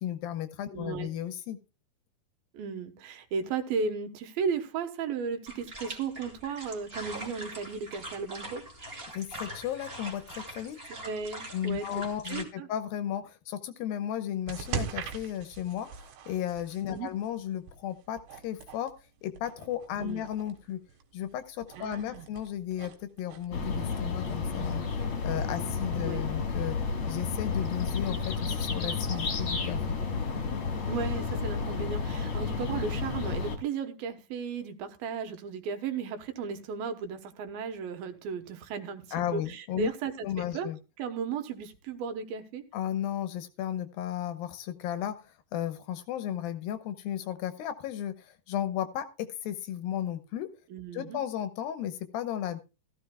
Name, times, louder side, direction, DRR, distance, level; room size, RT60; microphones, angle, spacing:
voice 1, 0.0-1.6 9.1-10.8 11.5-18.9 19.2-20.8 21.1-26.8 27.1-30.0 39.1-39.9 40.2-40.8 42.7-45.1 45.5-49.1 49.4-50.5 50.9-52.6, left 11 dB, 75° left, 10 dB, 2.4 m, -34 dB
voice 2, 0.7-1.1 2.5-8.6 10.9-12.0 12.3-12.7 16.9-17.1 20.0-20.2 21.8-22.3 26.0-26.2 30.9-40.3 40.5-40.7 41.0-42.6 50.7-51.2, right 5 dB, 70° right, 7 dB, 2.8 m, -35 dB
sound 1, 5.5-12.4, right 1 dB, 20° right, 1.8 m, -43 dB
sound 2, 14.5-30.3, right 7 dB, 90° right, 3.4 m, -44 dB
sound 3, 23.5-33.6, left 4 dB, 45° left, 1.9 m, -31 dB
15.5 x 14.0 x 2.3 m, 0.29 s
omnidirectional pair, 4.5 m